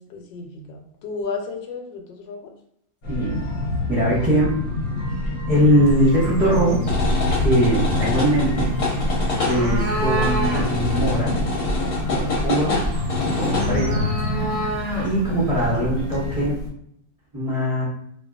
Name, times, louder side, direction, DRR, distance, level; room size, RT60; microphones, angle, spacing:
voice 1, 0.0-2.5 7.9-8.4 15.3-15.9, left 3 dB, 90° left, 2 dB, 1.3 m, -34 dB
sound 1, 3.0-16.5, left 2 dB, 60° left, 1.1 m, -25 dB
voice 2, 3.1-3.4 3.9-4.6 5.5-6.9 7.4-8.7 9.4-11.4 12.1-12.8 13.3-14.0 15.0-16.6 17.3-17.8, equal, 30° right, -9 dB, 0.7 m, -21 dB
sound 2, 5.9-16.7, equal, 75° right, 0.5 m, -30 dB
2.8 x 2.5 x 2.3 m, 0.70 s
omnidirectional pair, 2.0 m